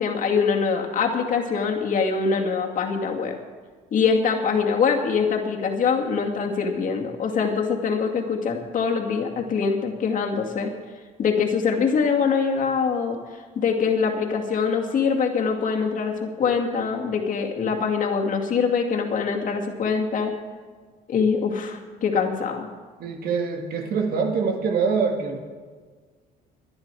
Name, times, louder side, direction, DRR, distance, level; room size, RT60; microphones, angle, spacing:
voice 1, 0.0-3.3 3.9-10.7 11.2-13.2 13.6-20.3 21.1-22.7, left 5 dB, 50° left, 1 dB, 2.3 m, -23 dB
voice 2, 23.0-25.4, right 5 dB, 65° right, 3 dB, 2.1 m, -24 dB
22.5 x 9.6 x 4.8 m, 1.5 s
cardioid pair, 110°, 17 cm